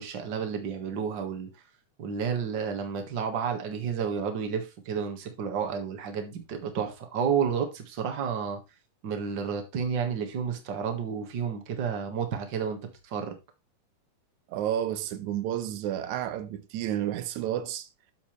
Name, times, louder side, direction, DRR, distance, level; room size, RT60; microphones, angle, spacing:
voice 1, 0.0-1.5 2.0-8.6 9.0-12.8 13.0-13.4, right 7 dB, 45° right, 2.0 m, -31 dB
voice 2, 14.5-17.9, right 11 dB, 75° right, 2.2 m, -31 dB
8.9 x 7.2 x 3.2 m
omnidirectional pair, 3.5 m